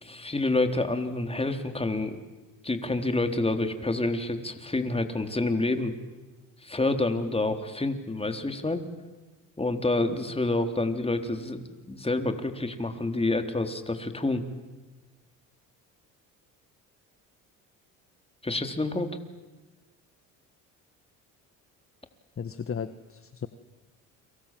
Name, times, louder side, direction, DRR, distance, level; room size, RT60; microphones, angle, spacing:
voice 1, 0.0-2.2 2.6-5.9 6.6-8.8 9.6-14.5 18.4-19.2, left 2 dB, 15° left, 7 dB, 3.8 m, -28 dB
voice 2, 22.4-23.5, left 6 dB, 35° left, 12 dB, 1.5 m, -35 dB
30.0 x 25.0 x 7.7 m, 1.2 s
supercardioid pair, 65°, 38 cm